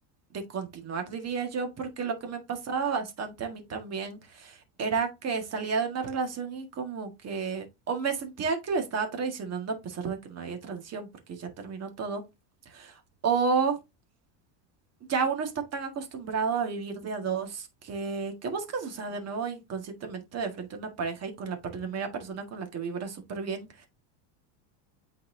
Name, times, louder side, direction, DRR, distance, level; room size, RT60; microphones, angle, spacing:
voice 1, 0.5-2.4 2.7-12.2 12.7-13.8 15.1-23.9, right 5 dB, 30° right, 1.8 m, -32 dB
8.3 x 4.3 x 2.7 m
cardioid pair, 135°, 47 cm